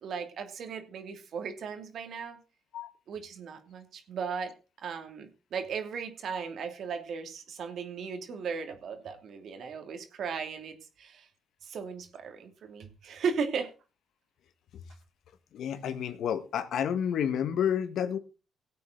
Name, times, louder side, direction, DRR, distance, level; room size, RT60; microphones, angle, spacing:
voice 1, 0.0-2.4 3.1-4.5 4.8-11.3 11.6-13.7, right 6 dB, 65° right, 7 dB, 2.6 m, -36 dB
voice 2, 15.5-18.2, left 8 dB, 70° left, 11 dB, 1.6 m, -30 dB
18.0 x 8.4 x 3.9 m, 0.32 s
cardioid pair, 90°, 0 cm